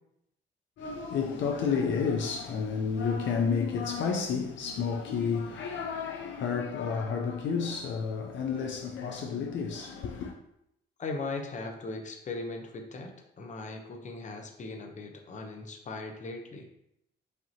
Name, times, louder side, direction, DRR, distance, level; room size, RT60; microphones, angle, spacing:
voice 1, 0.8-10.3, left 5 dB, 70° left, 0.5 m, -31 dB
voice 2, 11.0-13.1 13.4-16.6, left 3 dB, 40° left, 0.7 m, -38 dB
5.0 x 2.8 x 2.8 m
cardioid pair, 90°, 20 cm